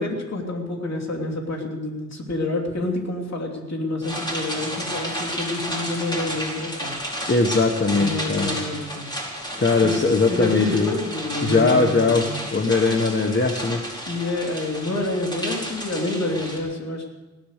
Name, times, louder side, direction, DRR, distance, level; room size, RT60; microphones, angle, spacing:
voice 1, 0.0-6.9 7.9-9.1 9.8-10.0 10.3-12.4 14.1-17.1, left 2 dB, 65° left, -1 dB, 3.2 m, -28 dB
sound 1, 4.0-16.6, equal, 15° left, 4.7 m, -32 dB
voice 2, 7.3-8.5 9.6-10.9 11.4-13.8, left 3 dB, 40° left, 3 dB, 1.3 m, -20 dB
17.5 x 12.5 x 6.6 m, 1.1 s
wide cardioid pair, 90°, 29 cm